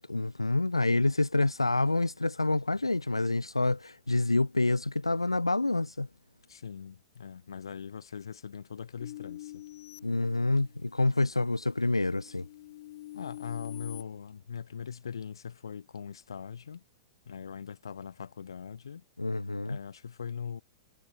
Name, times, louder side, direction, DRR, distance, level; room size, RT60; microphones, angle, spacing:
voice 1, 0.0-6.1 10.0-12.5 19.2-19.8, left 2 dB, 80° left, 1.1 m, -27 dB
voice 2, 6.5-9.6 13.1-16.8 17.3-19.0 19.6-20.6, left 7 dB, 65° left, 2.6 m, -41 dB
sound 1, 9.0-11.0 11.5-14.0, left 14 dB, 50° left, 1.2 m, -46 dB
figure-of-eight pair, 105°, 3 cm